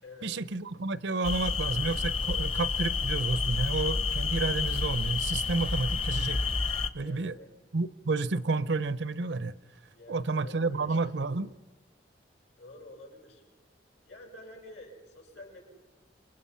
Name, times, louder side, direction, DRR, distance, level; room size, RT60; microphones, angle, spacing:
voice 1, 0.2-6.4 6.9-7.3 7.7-9.5 10.1-11.6, right 3 dB, 80° right, 0.7 m, -30 dB
sound 1, 1.2-6.9, left 4 dB, 30° left, 0.9 m, -30 dB
voice 2, 7.0-7.5 9.9-11.1 12.6-13.4 14.0-15.6, left 1 dB, 75° left, 6.7 m, -49 dB
28.0 x 22.5 x 5.7 m
head